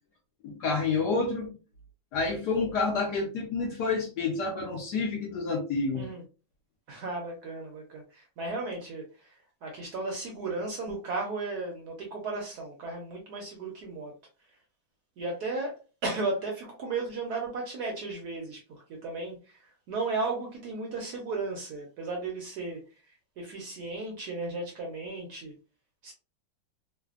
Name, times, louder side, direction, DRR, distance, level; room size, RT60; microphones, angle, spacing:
voice 1, 0.4-1.6 2.1-6.1, left 4 dB, 70° left, 0 dB, 1.0 m, -29 dB
voice 2, 6.9-14.1 15.2-18.6 18.9-22.8 23.4-25.5 26.0-26.1, right 3 dB, 70° right, 1 dB, 1.0 m, -35 dB
3.2 x 2.1 x 2.3 m, 0.33 s
omnidirectional pair, 2.2 m